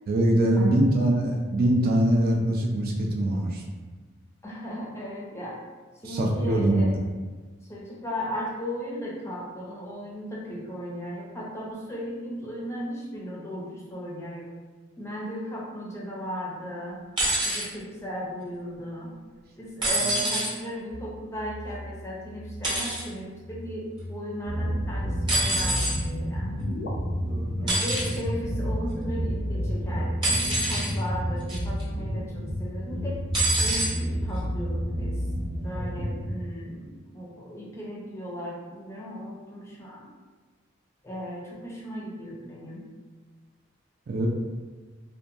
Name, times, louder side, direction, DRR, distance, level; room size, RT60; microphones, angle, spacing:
voice 1, 0.1-3.6 6.0-6.8 20.0-20.1 27.2-27.8 44.1-44.3, right 1 dB, 50° right, -1 dB, 0.4 m, -23 dB
voice 2, 0.6-0.9 4.4-5.6 6.0-6.9 7.7-14.5 15.0-17.1 17.4-19.1 19.6-26.5 27.6-33.2 33.6-35.2 35.6-40.1 41.0-42.9, equal, 15° left, -4 dB, 0.5 m, -36 dB
sound 1, 17.2-17.6 19.8-20.5 22.6-23.0 25.3-26.0 27.7-28.2 30.2-30.9 31.5-31.8 33.3-33.9 34.9-35.0, right 1 dB, 25° right, 0.8 m, -26 dB
sound 2, 20.9-26.9, left 1 dB, 90° left, 0.5 m, -41 dB
sound 3, 24.4-36.3, equal, 90° right, 1.1 m, -30 dB
2.7 x 2.2 x 2.5 m, 1.3 s
head